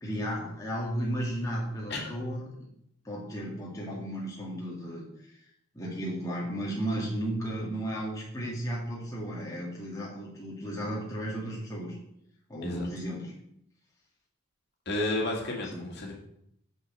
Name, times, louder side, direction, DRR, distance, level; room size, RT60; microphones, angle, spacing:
voice 1, 0.0-2.4 3.0-5.4 5.7-12.0 12.5-13.3 15.7-15.9, right 1 dB, 15° left, -4 dB, 1.9 m, -34 dB
voice 2, 14.9-16.1, left 2 dB, 50° left, -1 dB, 2.2 m, -31 dB
6.7 x 6.1 x 7.5 m, 0.74 s
head